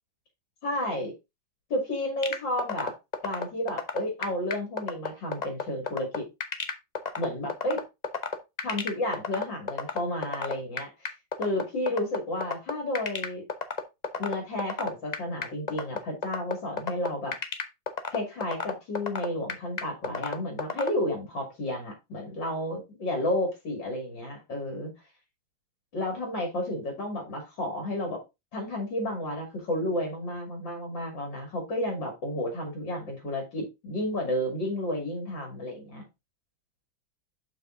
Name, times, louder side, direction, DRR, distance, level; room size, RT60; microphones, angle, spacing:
voice 1, 0.6-1.1 1.7-2.9 3.2-6.3 7.2-7.8 8.6-11.1 11.4-13.4 14.2-17.3 18.1-24.9 25.9-28.2 28.5-36.0, left 1 dB, 65° left, 3.0 m, -31 dB
sound 1, 2.2-20.9, left 5 dB, 80° left, 0.3 m, -30 dB
6.9 x 5.6 x 3.7 m
omnidirectional pair, 2.2 m